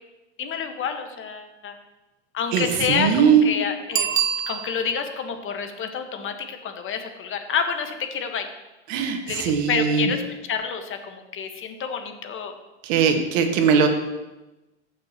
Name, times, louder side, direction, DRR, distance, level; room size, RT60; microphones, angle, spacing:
voice 1, 0.4-1.7 2.3-4.1 4.5-8.5 9.3-10.2 10.5-12.5, left 6 dB, 35° left, 6 dB, 1.4 m, -28 dB
voice 2, 2.5-3.4 8.9-10.1 12.8-13.9, right 7 dB, 65° right, 4 dB, 1.7 m, -20 dB
Bicycle bell, 3.9-5.1 10.5-10.6, right 9 dB, 35° right, 0.9 m, -25 dB
15.0 x 6.4 x 3.0 m, 1.0 s
hypercardioid pair, 95°, 36 cm